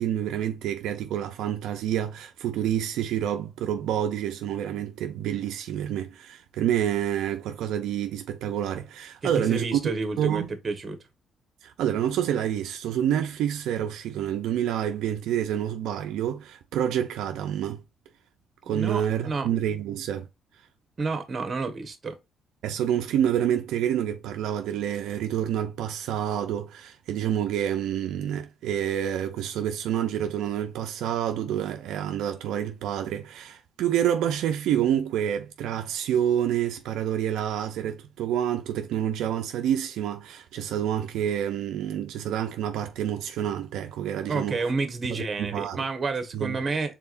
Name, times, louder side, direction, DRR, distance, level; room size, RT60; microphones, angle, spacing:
voice 1, 0.0-9.8 10.2-10.5 11.6-17.8 18.6-20.3 22.6-44.6 45.1-45.8 46.3-46.6, right 10 dB, 85° right, 0.5 m, -28 dB
voice 2, 9.2-11.0 18.7-19.5 21.0-22.1 44.3-46.9, right 4 dB, 35° right, 1.2 m, -30 dB
4.6 x 3.7 x 2.5 m
cardioid pair, 90°, 0 cm